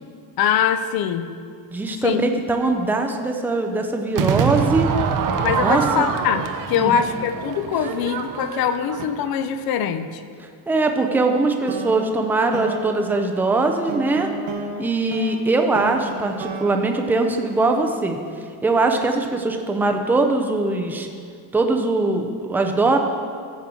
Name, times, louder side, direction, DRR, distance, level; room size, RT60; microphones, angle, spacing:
voice 1, 0.4-1.3 2.0-2.2 5.4-10.2, left 8 dB, 50° left, 10 dB, 0.6 m, -23 dB
voice 2, 1.7-4.9 5.6-5.8 6.7-7.0 10.7-14.3 14.8-18.2 18.6-21.1 21.5-23.0, right 3 dB, 5° right, 4 dB, 0.4 m, -21 dB
Crowd / Fireworks, 4.2-9.4, right 7 dB, 45° right, 0.7 m, -25 dB
sound 1, 11.7-18.1, right 4 dB, 80° right, 1.5 m, -33 dB
14.0 x 7.3 x 3.7 m, 2.2 s
cardioid pair, 170°, 46 cm